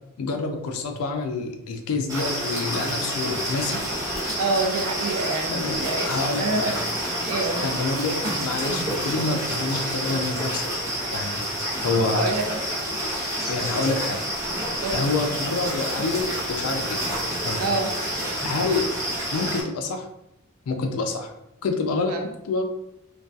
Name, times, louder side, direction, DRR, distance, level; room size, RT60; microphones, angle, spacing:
voice 1, 0.2-3.9 5.5-6.7 7.6-10.7 11.1-11.5 11.8-12.3 13.0-13.1 13.5-14.2 14.9-17.0 17.4-17.6 18.4-18.9 19.3-20.1 20.7-21.3 21.6-22.2 22.4-22.7, left 3 dB, 85° left, 5 dB, 0.4 m, -27 dB
sound 1, 2.1-19.6, right 1 dB, 15° right, 0.6 m, -28 dB
voice 2, 4.4-6.1 6.4-6.7 7.3-7.6 12.1-12.4 14.8-15.1 17.6-17.9 22.1-22.2, right 3 dB, 85° right, 2 dB, 0.5 m, -26 dB
2.6 x 2.2 x 2.3 m, 0.84 s
head